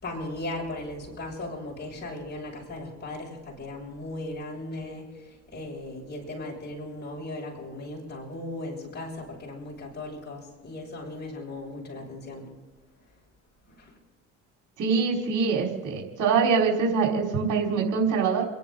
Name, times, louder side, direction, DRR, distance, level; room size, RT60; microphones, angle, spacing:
voice 1, 0.0-12.5 13.7-14.0, left 2 dB, 30° left, -3 dB, 6.8 m, -37 dB
voice 2, 14.8-18.5, right 5 dB, 60° right, -1 dB, 4.6 m, -24 dB
30.0 x 10.5 x 3.9 m, 1.3 s
supercardioid pair, 75°, 34 cm